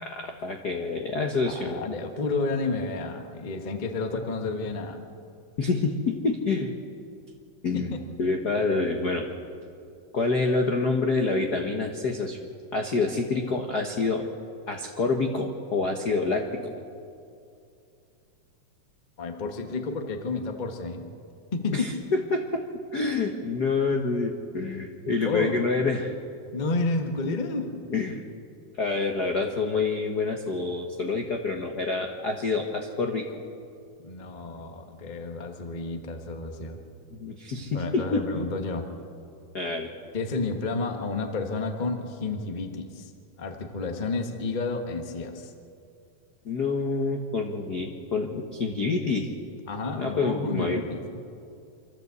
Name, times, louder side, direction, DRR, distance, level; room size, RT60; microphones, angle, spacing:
voice 1, 0.0-1.8 5.6-6.7 7.6-7.9 8.2-9.3 10.1-12.4 12.7-14.3 14.7-16.7 21.7-22.6 22.9-26.1 27.9-28.2 28.8-33.3 37.1-38.4 39.5-39.9 46.4-49.3 50.0-50.8, left 3 dB, 65° left, 3 dB, 0.9 m, -27 dB
voice 2, 1.5-5.0 7.7-8.0 19.2-21.1 21.5-21.9 25.2-25.6 26.5-27.7 34.0-36.8 37.7-38.9 40.1-43.1 43.4-45.5 49.7-51.0, left 3 dB, 40° left, 4 dB, 0.6 m, -31 dB
25.5 x 14.0 x 8.1 m, 2.5 s
omnidirectional pair, 3.7 m